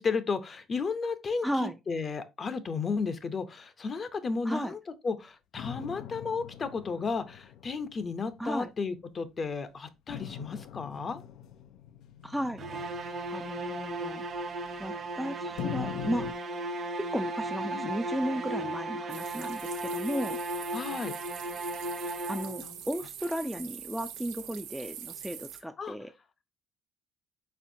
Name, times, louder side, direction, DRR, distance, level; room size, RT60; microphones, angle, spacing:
voice 1, 0.0-11.2 17.7-17.9 20.7-21.2 22.6-22.8 25.8-26.0, left 4 dB, 40° left, 0.7 m, -33 dB
voice 2, 1.4-1.8 4.4-4.7 8.4-8.7 12.2-12.6 13.3-14.2 14.8-16.3 17.0-20.4 22.3-26.1, equal, ahead, 0.4 m, -34 dB
sound 1, 5.6-9.2 10.1-15.1 15.6-16.3, left 11 dB, 75° left, 0.4 m, -43 dB
sound 2, 12.6-22.8, right 2 dB, 50° right, 1.1 m, -36 dB
sound 3, 19.1-25.6, right 10 dB, 85° right, 0.6 m, -44 dB
4.3 x 4.1 x 2.7 m
cardioid pair, 85°, 0 cm